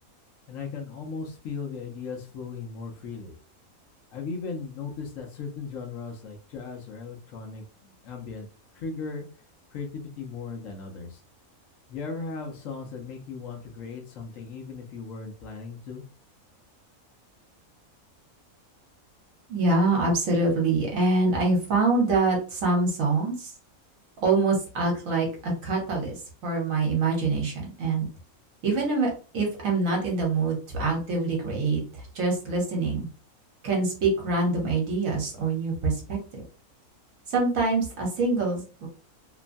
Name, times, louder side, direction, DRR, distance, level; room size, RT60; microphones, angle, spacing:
voice 1, 0.5-3.3 4.1-8.5 8.8-9.3 9.7-11.2 11.9-16.0, left 4 dB, 70° left, 2 dB, 1.0 m, -37 dB
voice 2, 19.5-23.5 24.2-28.1 28.6-33.1 33.6-36.4 37.3-38.9, right 3 dB, 70° right, 0 dB, 1.3 m, -25 dB
3.0 x 2.1 x 2.5 m, 0.37 s
omnidirectional pair, 1.5 m